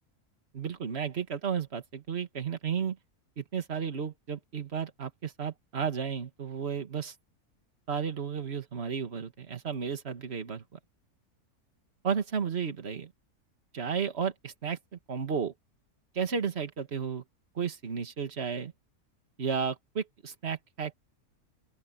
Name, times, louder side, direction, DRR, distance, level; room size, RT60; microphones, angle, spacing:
voice 1, 0.5-3.0 3.4-7.1 7.9-10.8 12.0-13.1 13.7-15.5 16.1-17.2 17.6-18.7 19.4-20.9, right 6 dB, 45° right, 1.9 m, -33 dB
open air
omnidirectional pair, 1.6 m